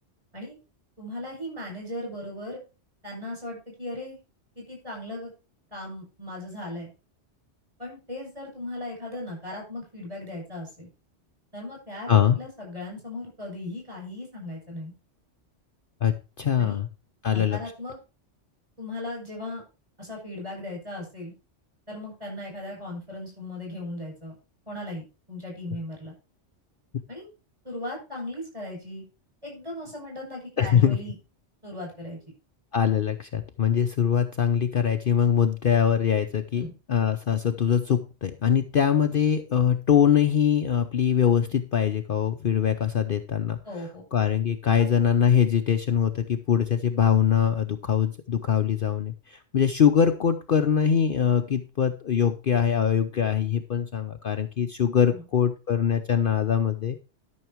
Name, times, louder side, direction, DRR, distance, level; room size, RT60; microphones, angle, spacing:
voice 1, 1.0-2.6 3.0-4.2 4.6-5.3 5.7-6.9 7.8-10.9 11.5-14.9 16.6-16.8 17.3-18.0 18.8-19.6 20.0-21.3 21.9-24.4 24.7-26.1 27.1-27.3 27.6-29.0 29.4-31.1 31.6-32.2 36.5-36.7 43.6-44.0 44.8-44.9 55.1-55.2, left 1 dB, 30° right, -1 dB, 8.0 m, -37 dB
voice 2, 16.0-16.9 17.2-17.6 30.6-31.0 32.7-43.6 44.1-57.0, left 8 dB, 50° left, 7 dB, 0.8 m, -23 dB
12.5 x 6.4 x 4.5 m, 0.31 s
omnidirectional pair, 1.2 m